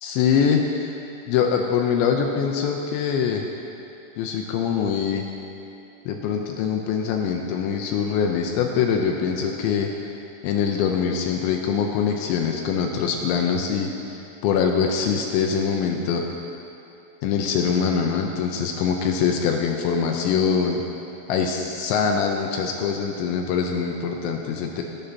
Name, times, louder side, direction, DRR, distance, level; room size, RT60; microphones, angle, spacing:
voice 1, 0.0-0.9 1.3-3.4 4.2-5.3 6.1-9.9 10.4-16.2 17.2-20.8 21.3-24.8, left 6 dB, 85° left, 2 dB, 2.7 m, -23 dB
19.0 x 10.0 x 2.8 m, 2.8 s
omnidirectional pair, 5.7 m